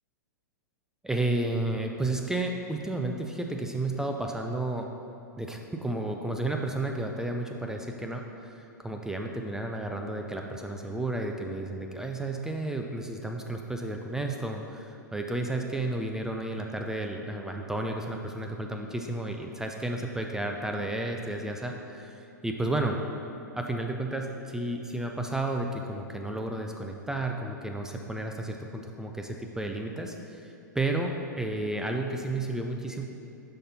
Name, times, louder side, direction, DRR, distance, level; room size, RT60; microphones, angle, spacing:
voice 1, 1.0-4.9 5.4-23.0 23.5-33.0, right 2 dB, 5° right, 3 dB, 0.4 m, -32 dB
9.9 x 5.7 x 2.8 m, 2.7 s
figure-of-eight pair, 105°, 10 cm